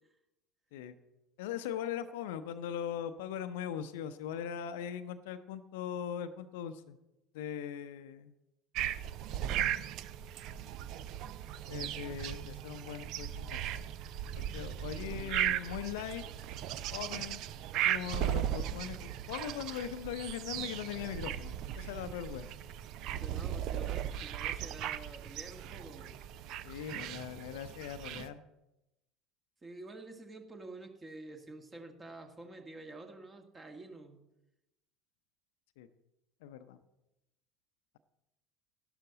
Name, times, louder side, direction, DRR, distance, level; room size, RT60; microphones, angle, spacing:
voice 1, 1.4-7.0 7.3-8.3 11.7-13.8 14.4-16.2 16.9-17.4 17.7-22.5 26.6-28.4 35.8-35.9 36.4-36.8, left 9 dB, 60° left, 11 dB, 0.7 m, -40 dB
sound 1, 8.7-28.3, right 11 dB, 50° right, 0.5 m, -37 dB
voice 2, 15.1-15.7 23.2-26.2 29.6-34.2, right 2 dB, 20° right, 5 dB, 1.8 m, -49 dB
12.0 x 12.0 x 4.0 m, 0.93 s
figure-of-eight pair, 70°, 0 cm